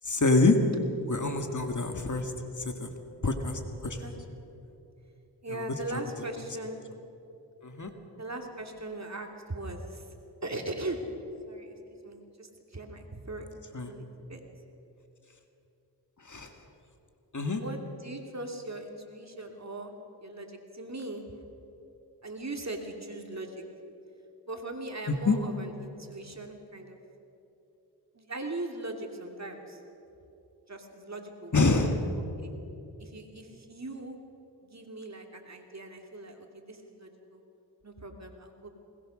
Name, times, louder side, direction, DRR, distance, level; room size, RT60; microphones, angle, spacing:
voice 1, 0.0-0.6 1.1-2.3 2.6-2.9 3.2-4.0 7.6-7.9 13.7-13.9 16.2-16.5 17.3-17.6 25.1-25.4 31.5-32.0, left 3 dB, 45° left, 5 dB, 2.1 m, -26 dB
voice 2, 5.4-6.9 8.2-10.1 10.4-11.0 11.5-13.5 13.8-14.4 17.6-19.9 20.2-21.3 22.2-23.6 24.5-27.0 28.1-29.8 30.7-31.5 32.4-32.5 33.0-34.2 34.6-37.4 37.8-38.7, right 2 dB, 40° right, 3 dB, 2.9 m, -39 dB
21.0 x 19.5 x 6.4 m, 2.8 s
cardioid pair, 50°, 41 cm